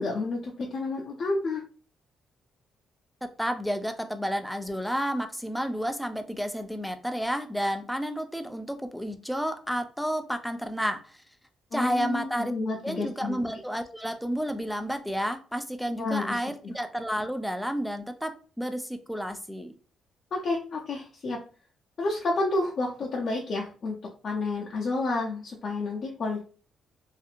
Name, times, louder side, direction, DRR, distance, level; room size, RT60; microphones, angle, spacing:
voice 1, 0.0-1.6 11.7-13.4 16.0-16.4 20.3-21.4 22.0-23.9 24.2-26.4, left 3 dB, 50° left, 0.5 m, -30 dB
voice 2, 3.4-11.2 11.7-12.5 12.8-19.8, equal, ahead, 0.4 m, -31 dB
2.7 x 2.5 x 2.4 m
cardioid pair, 90°, 0 cm